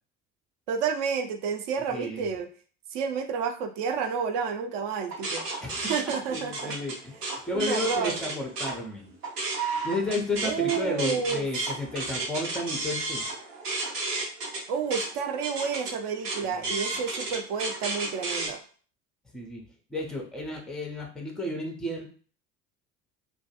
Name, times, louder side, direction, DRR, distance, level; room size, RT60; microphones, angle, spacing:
voice 1, 0.7-2.5 2.9-5.5 5.8-6.8 7.5-8.1 10.4-11.4 14.7-18.6, right 6 dB, 55° right, 6 dB, 0.5 m, -30 dB
voice 2, 1.9-2.3 5.6-6.0 6.2-7.2 7.5-9.1 9.8-13.2 16.4-16.8 19.3-19.6 19.9-22.0, left 2 dB, ahead, 2 dB, 0.4 m, -32 dB
sound 1, 5.1-8.7 9.1-18.5, right 3 dB, 85° right, 0.7 m, -32 dB
2.2 x 2.2 x 2.8 m, 0.42 s
figure-of-eight pair, 65°, 45 cm